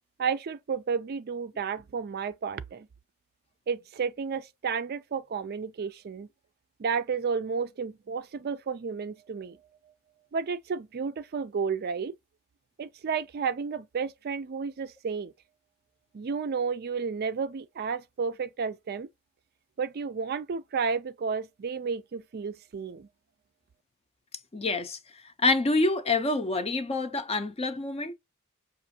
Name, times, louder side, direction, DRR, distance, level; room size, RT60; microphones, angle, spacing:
voice 1, 0.2-2.9 3.7-6.3 6.8-9.6 10.3-12.1 12.8-15.3 16.1-19.1 19.8-23.1, right 5 dB, 45° right, 0.4 m, -32 dB
voice 2, 24.5-25.0 25.4-28.1, left 2 dB, 30° left, 0.6 m, -26 dB
5.9 x 2.5 x 2.7 m
head